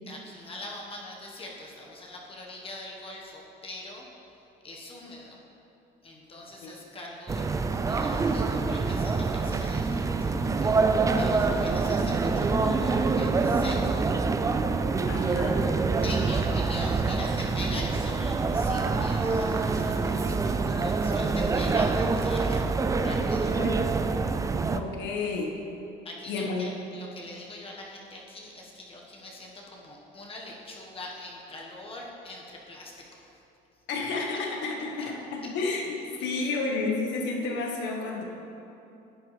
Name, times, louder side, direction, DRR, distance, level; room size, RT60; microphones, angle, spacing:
voice 1, 0.1-4.0 4.6-5.4 6.0-14.1 15.1-15.6 16.0-22.7 23.0-23.5 26.0-33.3 36.3-36.5, left 2 dB, 30° left, -2 dB, 1.4 m, -43 dB
sound 1, 7.3-24.8, right 4 dB, 15° right, 0.4 m, -26 dB
voice 2, 15.1-15.7 23.6-23.7 24.7-25.5 26.3-26.7 33.9-38.2, left 3 dB, 70° left, 0 dB, 1.6 m, -31 dB
11.5 x 8.0 x 3.4 m, 2.9 s
cardioid pair, 115°, 19 cm